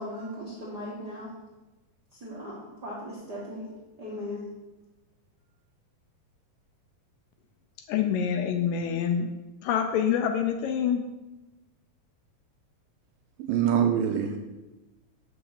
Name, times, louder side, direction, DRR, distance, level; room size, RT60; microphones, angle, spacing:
voice 1, 0.0-1.3 2.1-3.7 4.0-4.5, left 1 dB, 55° right, -6 dB, 1.1 m, -38 dB
voice 2, 7.9-9.3 9.6-11.0, left 8 dB, 80° left, 6 dB, 2.1 m, -26 dB
voice 3, 13.4-14.4, right 9 dB, 80° right, 4 dB, 2.2 m, -24 dB
7.0 x 5.9 x 6.5 m, 1.1 s
omnidirectional pair, 4.3 m